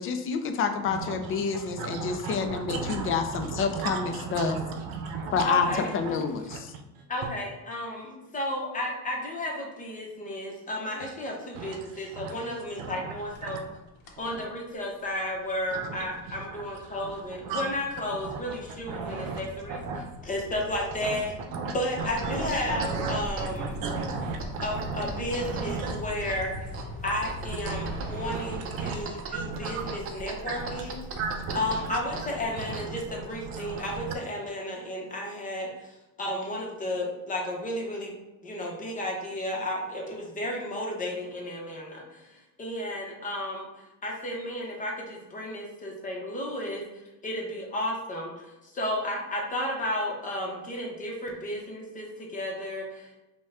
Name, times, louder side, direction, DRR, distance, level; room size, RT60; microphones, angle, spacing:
voice 1, 0.0-4.6 5.3-5.7 5.9-6.7, left 6 dB, 40° left, 7 dB, 0.4 m, -28 dB
voice 2, 0.9-5.8 6.4-7.3 11.5-13.6 14.2-14.4 15.7-17.8 18.2-18.6 18.9-19.4 19.7-20.3 21.0-21.2 21.5-26.0 27.5-30.0 30.4-34.2, right 4 dB, 75° right, 5 dB, 0.7 m, -36 dB
voice 3, 5.4-5.9 7.1-13.6 14.2-19.8 20.3-21.3 21.7-23.8 24.6-26.5 27.0-31.0 31.5-38.2 38.4-46.8 47.2-48.3 48.8-53.2, left 1 dB, 25° left, -1 dB, 0.8 m, -33 dB
sound 1, 13.2-13.7 14.0-14.3 14.8-29.1, left 3 dB, 85° left, 0.9 m, -42 dB
sound 2, 22.0-34.1, right 4 dB, 40° right, 0.6 m, -41 dB
5.3 x 2.3 x 3.5 m, 1.0 s
cardioid pair, 165°, 35 cm